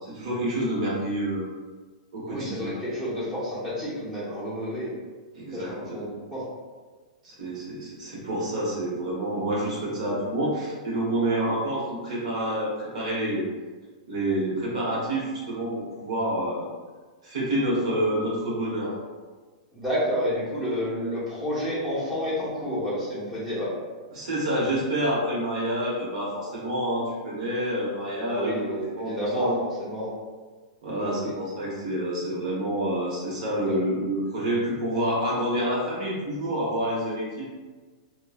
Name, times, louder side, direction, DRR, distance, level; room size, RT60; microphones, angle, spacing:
voice 1, 0.0-1.4 2.1-2.7 5.3-6.0 7.2-13.4 14.1-16.7 17.2-19.0 24.1-29.6 30.8-37.4, right 1 dB, 65° right, -5 dB, 1.1 m, -28 dB
voice 2, 2.3-4.9 5.5-6.4 19.7-23.7 28.3-29.5 29.8-30.1 30.9-31.3 33.6-33.7, equal, 5° right, -10 dB, 0.8 m, -30 dB
3.0 x 2.2 x 2.4 m, 1.4 s
supercardioid pair, 165°, 4 cm